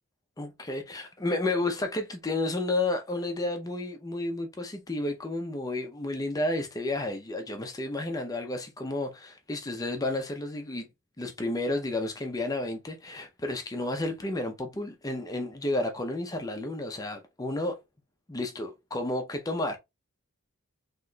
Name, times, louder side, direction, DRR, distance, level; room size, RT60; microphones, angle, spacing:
voice 1, 0.4-10.9 11.2-17.8 18.3-19.8, left 2 dB, 15° left, 0.5 m, -31 dB
4.0 x 2.9 x 2.2 m
head